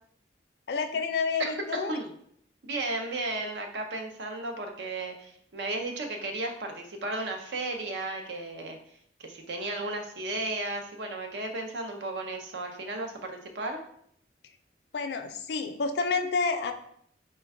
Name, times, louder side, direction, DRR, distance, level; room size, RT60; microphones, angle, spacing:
voice 1, 0.7-2.0 14.9-16.7, left 4 dB, 65° left, 7 dB, 0.4 m, -29 dB
voice 2, 1.4-2.1 2.6-8.8 9.2-13.8, right 2 dB, 80° right, 3 dB, 0.6 m, -34 dB
4.2 x 2.2 x 3.5 m, 0.66 s
head